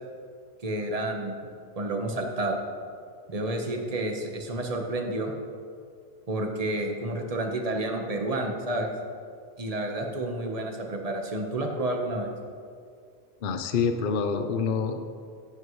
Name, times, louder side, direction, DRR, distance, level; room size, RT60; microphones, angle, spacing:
voice 1, 0.6-1.5 1.7-2.6 3.3-5.3 6.3-8.9 9.6-12.3, right 1 dB, 30° right, 2 dB, 1.2 m, -30 dB
voice 2, 13.4-15.0, left 5 dB, 45° left, 7 dB, 0.7 m, -27 dB
15.5 x 10.5 x 3.2 m, 2.2 s
omnidirectional pair, 1.4 m